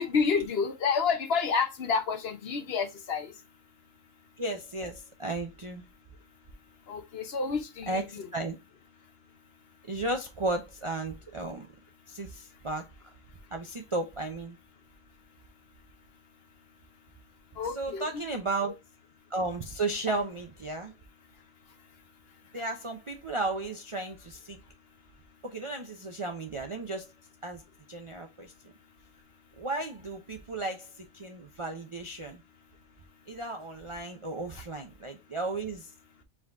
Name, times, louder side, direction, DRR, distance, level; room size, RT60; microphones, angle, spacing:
voice 1, 0.0-3.3 6.9-8.2 17.6-18.2, left 5 dB, 60° left, 0.9 m, -29 dB
voice 2, 4.4-5.8 7.9-8.6 9.9-11.7 12.1-12.9 13.5-14.6 17.7-18.7 19.3-20.9 22.5-24.6 25.4-27.1 27.4-27.6 27.9-28.5 29.6-32.4 33.3-35.9, right 2 dB, 45° right, 0.4 m, -34 dB
4.8 x 3.7 x 2.3 m
omnidirectional pair, 1.3 m